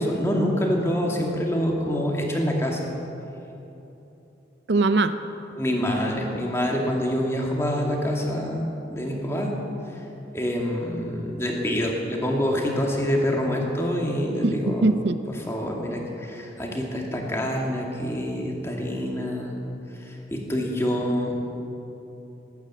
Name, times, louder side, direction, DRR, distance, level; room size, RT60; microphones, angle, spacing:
voice 1, 0.0-2.9 5.6-9.5 10.3-14.9 15.3-19.5 19.9-21.4, equal, 15° left, -1 dB, 2.0 m, -26 dB
voice 2, 4.7-5.1 14.4-15.2, right 3 dB, 70° right, 11 dB, 0.6 m, -21 dB
19.5 x 9.3 x 7.6 m, 3.0 s
head